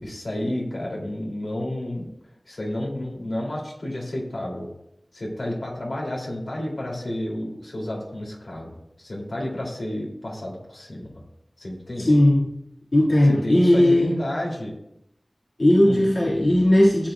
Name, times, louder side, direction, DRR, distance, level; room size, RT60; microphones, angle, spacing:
voice 1, 0.0-2.1 2.5-4.7 5.1-11.1 11.6-12.1 13.4-14.7 15.8-16.1, left 1 dB, 85° left, -2 dB, 2.4 m, -31 dB
voice 2, 12.0-12.5 12.9-14.1 15.6-17.1, left 1 dB, 70° left, -6 dB, 1.7 m, -17 dB
14.5 x 7.7 x 2.2 m, 0.80 s
wide cardioid pair, 55°, 0 cm